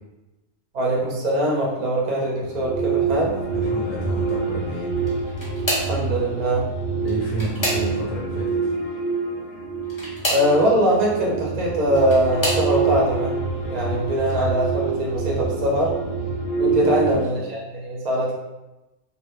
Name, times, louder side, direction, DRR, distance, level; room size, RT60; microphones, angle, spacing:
voice 1, 0.7-3.4 5.9-6.7 10.2-13.3 13.6-15.9 16.6-18.3, right 1 dB, 45° right, -3 dB, 0.5 m, -22 dB
sound 1, 2.4-17.1, right 4 dB, 60° left, 0.6 m, -26 dB
voice 2, 3.5-4.9 7.0-8.7 16.7-17.2, right 1 dB, 80° left, -3 dB, 1.0 m, -30 dB
sound 2, 5.0-6.0 7.0-8.2 9.8-10.5 11.6-12.7 13.4-13.8 14.2-14.3 15.7-15.8, equal, 20° left, 0.7 m, -28 dB
2.2 x 2.1 x 3.0 m, 1.0 s
omnidirectional pair, 1.3 m